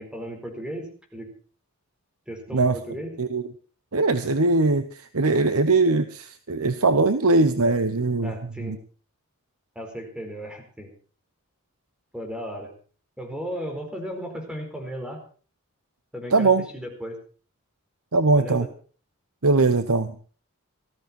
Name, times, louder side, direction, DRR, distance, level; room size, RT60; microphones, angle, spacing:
voice 1, 0.0-1.3 2.3-3.2 8.2-8.8 9.7-10.9 12.1-12.7 13.2-15.2 16.1-17.2 18.3-18.7, equal, 5° right, 3 dB, 4.5 m, -35 dB
voice 2, 3.9-8.8 16.3-16.6 18.1-18.7 19.4-20.1, right 3 dB, 80° right, 11 dB, 1.1 m, -21 dB
19.0 x 14.5 x 4.5 m, 0.40 s
head